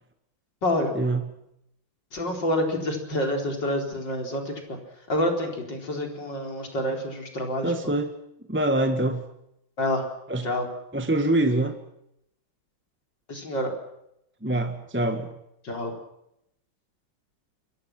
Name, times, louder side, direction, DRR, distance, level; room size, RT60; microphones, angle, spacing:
voice 1, 0.6-0.9 2.1-4.8 5.1-7.7 9.8-10.0 10.4-10.7 13.3-13.7 15.6-15.9, left 1 dB, 60° left, 2 dB, 4.9 m, -27 dB
voice 2, 7.6-8.1 8.5-9.2 10.3-10.5 10.9-11.7 14.4-15.3, right 1 dB, 5° right, 6 dB, 1.3 m, -24 dB
27.0 x 23.5 x 6.1 m, 0.80 s
omnidirectional pair, 2.2 m